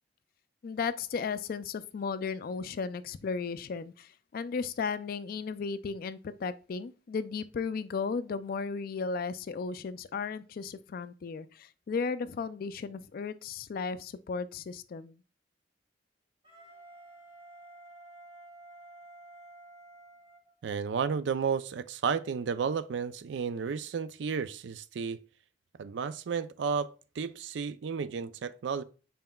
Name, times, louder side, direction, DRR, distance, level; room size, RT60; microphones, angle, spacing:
voice 1, 0.6-15.2, left 5 dB, 50° left, 0.3 m, -35 dB
Wind instrument woodwind instrument, 16.4-21.2, right 2 dB, 30° right, 1.7 m, -52 dB
voice 2, 20.6-25.2 25.8-26.9 27.2-28.8, right 6 dB, 70° right, 0.4 m, -32 dB
5.6 x 4.2 x 2.3 m
head